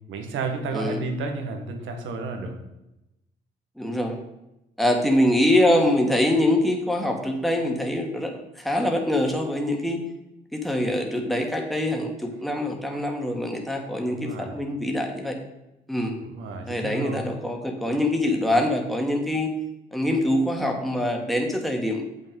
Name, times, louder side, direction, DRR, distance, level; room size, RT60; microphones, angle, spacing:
voice 1, 0.1-2.6 14.0-14.6 16.2-17.2, right 4 dB, 85° right, 4 dB, 1.5 m, -32 dB
voice 2, 0.7-1.0 3.8-4.2 4.8-10.0 10.5-15.4 15.9-16.2 16.7-19.5 19.9-22.0, left 1 dB, ahead, 1 dB, 1.9 m, -24 dB
7.7 x 6.1 x 5.4 m, 0.91 s
supercardioid pair, 65°, 20 cm